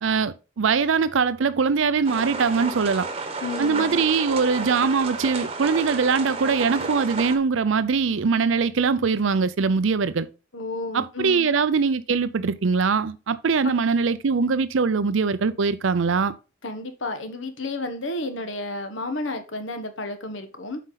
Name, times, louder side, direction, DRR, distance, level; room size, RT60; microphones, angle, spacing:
voice 1, 0.0-3.1 3.6-10.3 10.9-16.3, right 5 dB, 75° right, 0.5 m, -22 dB
sound 1, 2.0-7.4, right 3 dB, 30° right, 1.1 m, -31 dB
voice 2, 3.4-4.0 10.5-11.4 13.6-13.7 16.6-20.8, left 2 dB, 70° left, 1.4 m, -32 dB
8.3 x 5.1 x 3.9 m
head